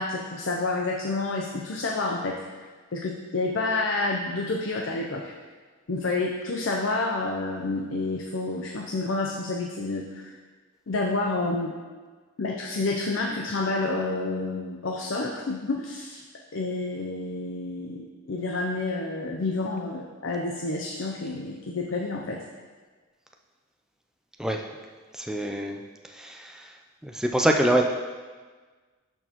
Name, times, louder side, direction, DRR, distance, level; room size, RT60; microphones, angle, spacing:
voice 1, 0.0-2.4 2.9-5.3 5.9-10.3 10.9-11.7 12.4-16.2 16.5-22.4, left 3 dB, 60° left, 0 dB, 0.5 m, -29 dB
voice 2, 25.1-25.8 26.1-26.7 27.0-27.8, right 1 dB, 5° right, 2 dB, 0.4 m, -25 dB
12.0 x 4.5 x 3.0 m, 1.4 s
head